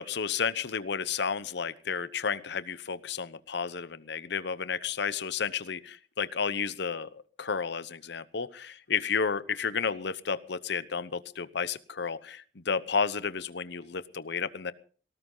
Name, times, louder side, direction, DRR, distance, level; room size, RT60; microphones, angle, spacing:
voice 1, 0.0-14.7, left 6 dB, 65° left, 15 dB, 0.9 m, -32 dB
18.5 x 18.0 x 3.9 m, 0.43 s
head